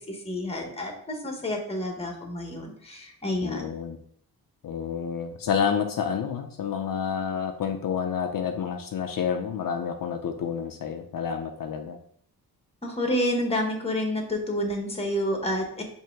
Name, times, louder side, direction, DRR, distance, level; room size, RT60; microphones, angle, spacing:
voice 1, 0.1-3.7 12.8-15.8, left 1 dB, 15° left, 3 dB, 1.0 m, -29 dB
voice 2, 3.4-4.0 4.6-12.0, left 7 dB, 65° left, 5 dB, 0.6 m, -29 dB
7.5 x 2.7 x 4.5 m, 0.62 s
wide cardioid pair, 175°, 36 cm